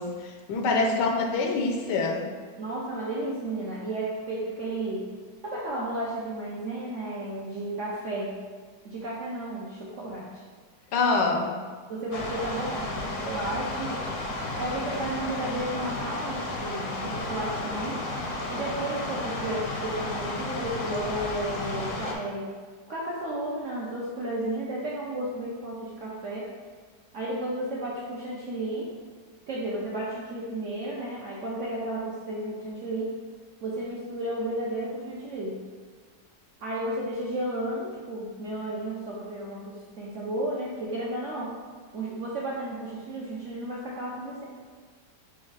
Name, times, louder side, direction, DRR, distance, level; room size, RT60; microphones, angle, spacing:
voice 1, 0.0-2.2 10.9-11.5, left 3 dB, 80° left, 2 dB, 1.2 m, -25 dB
voice 2, 0.6-1.0 2.6-5.0 5.4-8.3 8.8-10.3 11.9-13.9 14.5-18.0 18.5-22.5 22.9-26.5 27.1-28.9 29.5-33.1 33.6-35.6 36.6-41.5 41.9-44.4, right 1 dB, 70° right, -5 dB, 0.7 m, -33 dB
sound 1, 12.1-22.1, left 2 dB, 65° left, 0.8 m, -33 dB
4.3 x 2.3 x 4.6 m, 1.6 s
omnidirectional pair, 1.9 m